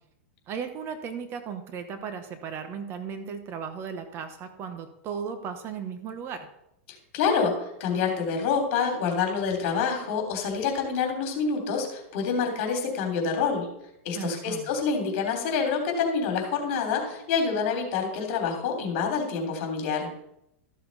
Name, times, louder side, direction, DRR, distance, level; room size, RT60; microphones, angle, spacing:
voice 1, 0.5-6.5 14.1-14.7, right 6 dB, 35° right, 8 dB, 1.2 m, -36 dB
voice 2, 7.1-13.7 14.0-20.1, left 5 dB, 55° left, 3 dB, 3.2 m, -27 dB
13.5 x 6.9 x 4.1 m, 0.80 s
supercardioid pair, 135°, 7 cm